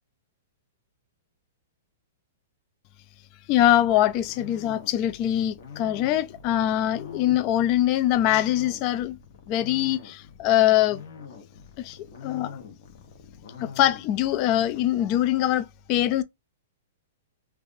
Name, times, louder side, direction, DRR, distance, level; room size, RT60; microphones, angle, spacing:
voice 1, 3.5-9.2 9.5-11.0 11.8-12.0 12.2-12.6 13.6-16.2, left 12 dB, 35° left, 0.3 m, -23 dB
sound 1, 3.8-14.8, left 6 dB, 55° left, 1.0 m, -44 dB
3.3 x 2.4 x 2.6 m
hypercardioid pair, 155°, 0 cm